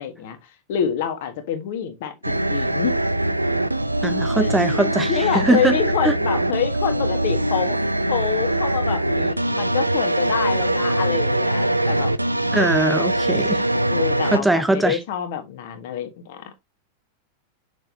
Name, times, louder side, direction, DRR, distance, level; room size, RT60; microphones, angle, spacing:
voice 1, 0.0-3.0 4.4-7.8 8.1-12.1 13.9-16.6, left 9 dB, 50° left, 1.7 m, -27 dB
sound 1, 2.2-14.4, right 1 dB, 85° right, 0.5 m, -22 dB
voice 2, 4.0-5.8 6.0-6.1 12.5-13.7 14.3-15.0, right 2 dB, 5° right, 0.5 m, -21 dB
6.7 x 6.5 x 2.8 m
figure-of-eight pair, 90°, 0 cm